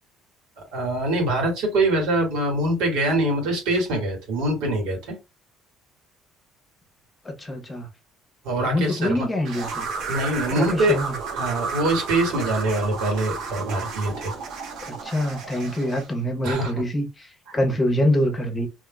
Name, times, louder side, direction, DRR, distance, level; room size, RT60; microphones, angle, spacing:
voice 1, 0.6-5.2 8.4-9.3 10.1-11.0 11.3-14.3 16.4-16.7 17.5-17.6, right 1 dB, 90° right, 1.9 m, -24 dB
voice 2, 7.2-7.9 8.7-9.9 10.6-11.1 14.8-18.7, left 1 dB, 15° left, 1.0 m, -25 dB
sound 1, 9.4-16.1, right 5 dB, 65° right, 1.1 m, -32 dB
3.6 x 3.1 x 2.3 m
cardioid pair, 120°, 0 cm